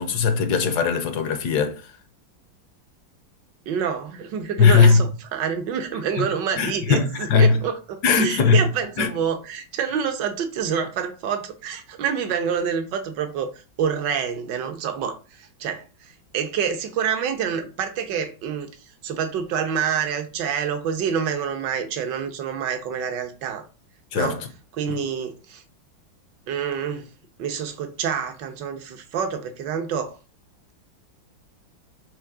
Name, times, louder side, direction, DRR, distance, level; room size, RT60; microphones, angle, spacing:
voice 1, 0.0-1.9 4.6-5.0 6.2-6.3 6.6-7.6 8.0-8.7 9.0-9.1 24.1-24.5, left 5 dB, 65° left, 1.2 m, -19 dB
voice 2, 3.7-13.5 13.8-18.7 19.0-23.6 24.1-24.4 24.8-25.6 26.5-27.1 27.4-30.2, right 7 dB, 65° right, 1.7 m, -27 dB
7.4 x 3.1 x 4.8 m
omnidirectional pair, 2.1 m